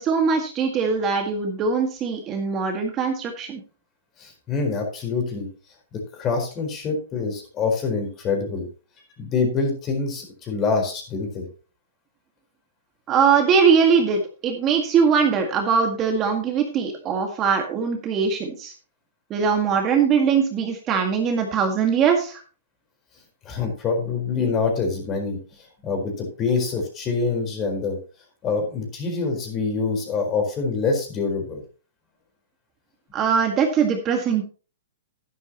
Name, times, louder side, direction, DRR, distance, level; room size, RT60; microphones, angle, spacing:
voice 1, 0.0-3.6 13.1-18.7 19.3-22.4 33.1-34.4, right 6 dB, 25° right, 3 dB, 1.9 m, -21 dB
voice 2, 4.2-5.5 5.9-8.7 9.2-11.5 23.4-25.4 25.8-28.0 28.4-31.6, left 4 dB, 25° left, 3 dB, 4.5 m, -25 dB
11.5 x 11.0 x 3.0 m, 0.37 s
hypercardioid pair, 135°, 0 cm